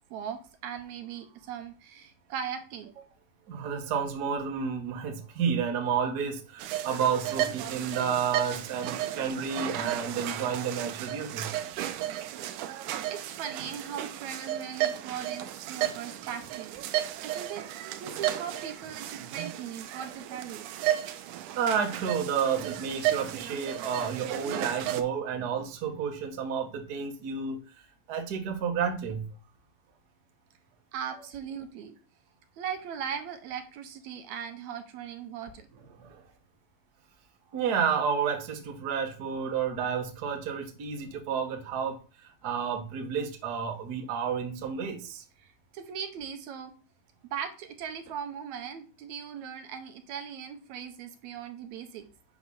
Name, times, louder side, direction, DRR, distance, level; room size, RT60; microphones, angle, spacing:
voice 1, 0.1-3.2 13.1-17.6 18.0-20.8 30.9-32.0 32.6-35.7 45.4-46.7 47.3-52.0, right 8 dB, 70° right, 6 dB, 2.2 m, -39 dB
voice 2, 3.5-11.5 21.5-27.6 28.1-29.2 36.0-36.2 37.5-45.2, right 7 dB, 50° right, 4 dB, 1.2 m, -31 dB
sound 1, 6.6-25.0, right 12 dB, 90° right, 2.1 m, -34 dB
8.0 x 3.1 x 5.4 m, 0.37 s
omnidirectional pair, 3.5 m